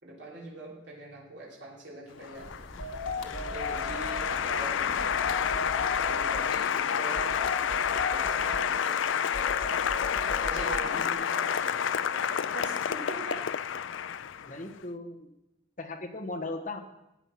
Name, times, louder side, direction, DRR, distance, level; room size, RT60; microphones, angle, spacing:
voice 1, 0.0-2.5 3.4-4.8 6.0-7.3 8.1-9.1 10.4-13.4, right 2 dB, 60° right, -4 dB, 3.5 m, -43 dB
Applause, 2.2-14.6, left 8 dB, 70° left, 0.4 m, -29 dB
sound 1, 2.3-7.2, equal, 20° left, 6.3 m, -48 dB
sound 2, 2.8-4.3 5.0-6.5 7.1-8.7 9.3-10.8, left 2 dB, 90° left, 1.6 m, -36 dB
voice 2, 14.4-15.3 15.8-16.8, left 2 dB, 40° left, 3 dB, 1.4 m, -37 dB
14.5 x 9.1 x 5.9 m, 0.92 s
head